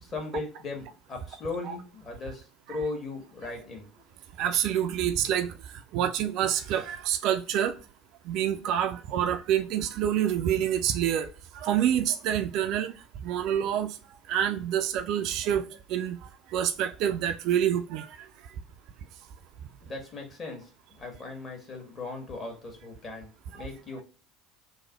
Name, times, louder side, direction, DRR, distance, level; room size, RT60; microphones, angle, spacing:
voice 1, 0.0-2.4 2.7-3.9 19.8-20.6 20.9-23.3 23.5-24.0, left 3 dB, 35° left, 1.3 m, -37 dB
voice 2, 4.4-5.5 5.9-7.7 8.3-11.3 11.5-12.9 13.2-13.9 14.3-16.2 16.5-18.1, right 10 dB, 55° right, 0.3 m, -27 dB
3.1 x 2.0 x 3.9 m
figure-of-eight pair, 65°, 0 cm